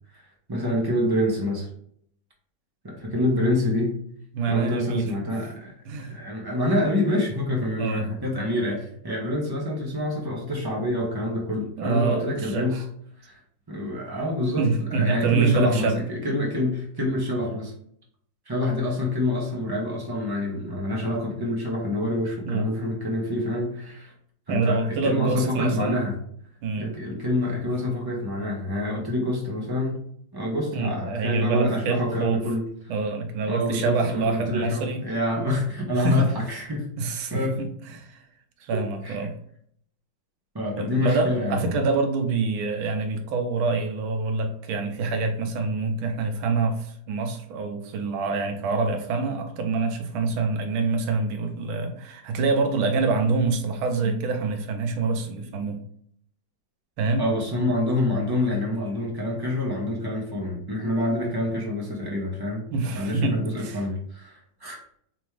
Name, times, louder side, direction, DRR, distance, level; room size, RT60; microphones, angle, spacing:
voice 1, 0.5-1.7 2.8-4.0 4.5-12.8 13.2-13.3 13.7-17.7 18.5-24.1 24.5-26.2 26.8-30.0 30.3-32.7 33.4-36.9 37.3-37.6 38.7-39.3 40.5-41.6 57.2-62.7 62.9-64.8, left 1 dB, 25° right, -2 dB, 0.5 m, -27 dB
voice 2, 4.3-5.1 5.9-6.1 7.8-8.1 11.8-12.8 14.6-16.0 22.4-22.7 24.5-26.0 26.6-26.9 30.7-32.4 32.9-35.1 35.4-35.5 35.9-36.3 37.0-38.2 38.6-39.3 40.8-55.8 57.0-57.2 62.7-63.8, right 4 dB, 85° right, 6 dB, 1.5 m, -26 dB
4.0 x 3.5 x 3.2 m, 0.66 s
omnidirectional pair, 2.2 m